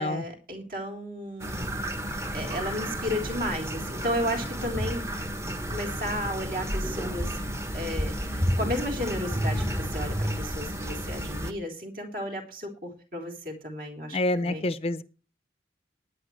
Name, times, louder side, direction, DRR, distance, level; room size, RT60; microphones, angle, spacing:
voice 1, 0.0-1.7 2.3-5.0 5.7-7.4 7.7-14.6, equal, 50° right, 3 dB, 3.7 m, -33 dB
sound 1, 1.4-11.5, equal, 15° right, 1.1 m, -31 dB
voice 2, 14.1-15.0, left 2 dB, 35° left, 13 dB, 0.6 m, -27 dB
19.0 x 9.5 x 3.2 m, 0.35 s
head